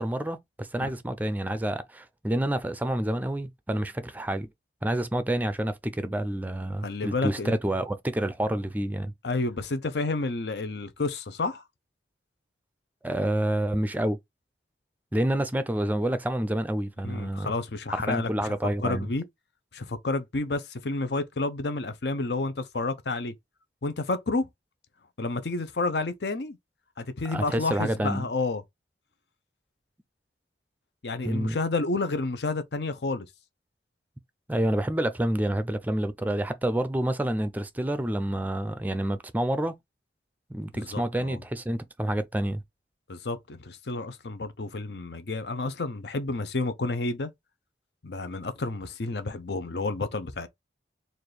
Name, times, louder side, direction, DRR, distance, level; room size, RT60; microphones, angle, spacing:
voice 1, 0.0-4.5 4.8-9.1 13.0-14.2 15.1-17.5 17.9-19.1 27.3-28.2 31.2-31.6 34.5-39.7 40.5-42.6, right 1 dB, 10° right, 0.4 m, -28 dB
voice 2, 6.8-7.6 9.2-11.6 17.0-18.3 18.8-19.2 19.7-23.3 23.8-24.5 25.2-26.6 27.0-28.6 31.0-33.3 40.7-41.4 43.1-47.3 48.0-50.5, left 3 dB, 65° left, 0.7 m, -30 dB
4.3 x 2.5 x 3.3 m
head